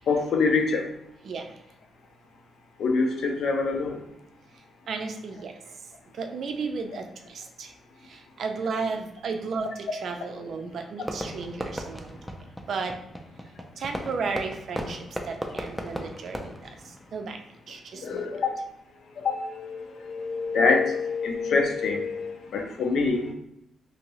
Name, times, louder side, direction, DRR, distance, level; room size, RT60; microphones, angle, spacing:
voice 1, 0.1-0.9 2.8-4.0 17.9-18.6 19.2-23.3, left 4 dB, 70° left, 4 dB, 0.5 m, -25 dB
voice 2, 4.9-5.5 6.1-7.7 8.0-12.2 12.7-12.9 13.8-17.4 17.7-18.3, right 4 dB, 60° right, 4 dB, 0.4 m, -34 dB
Fireworks, 11.0-17.6, equal, 5° left, 0.4 m, -37 dB
2.8 x 2.6 x 3.0 m, 0.80 s
cardioid pair, 125°, 0 cm